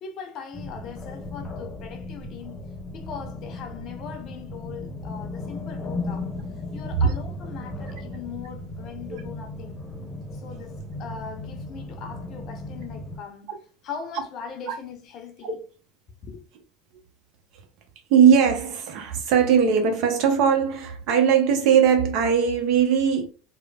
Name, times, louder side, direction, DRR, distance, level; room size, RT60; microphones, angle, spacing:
voice 1, 0.0-2.7 2.9-6.3 6.7-9.9 10.3-13.6 13.8-15.6 16.2-16.4, left 6 dB, 50° left, 0.6 m, -40 dB
sound 1, 0.5-13.2, left 2 dB, 15° left, 0.8 m, -36 dB
voice 2, 18.1-23.3, right 7 dB, 60° right, 0.7 m, -19 dB
3.1 x 2.1 x 2.2 m
hypercardioid pair, 75°, 0 cm